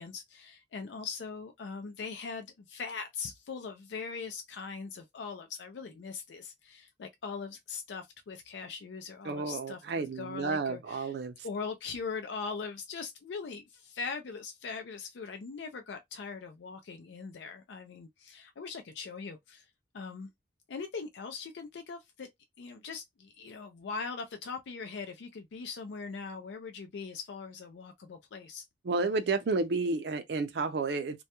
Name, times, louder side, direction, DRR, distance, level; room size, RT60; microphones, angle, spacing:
voice 1, 0.0-11.1 11.4-19.7 19.9-20.3 20.7-22.3 22.6-28.6, left 5 dB, 75° left, 0.4 m, -41 dB
voice 2, 9.3-11.3 28.9-31.2, right 3 dB, 65° right, 0.4 m, -31 dB
2.2 x 2.1 x 2.8 m
head